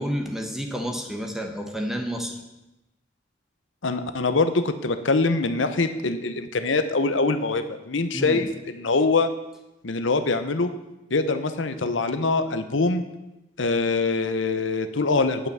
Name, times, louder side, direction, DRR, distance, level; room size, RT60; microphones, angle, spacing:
voice 1, 0.0-2.3 8.1-8.4, equal, ahead, 3 dB, 1.1 m, -30 dB
voice 2, 3.8-9.3 9.8-10.7 11.1-13.0 13.6-15.5, left 3 dB, 85° left, 9 dB, 0.9 m, -24 dB
9.8 x 5.7 x 7.9 m, 0.96 s
head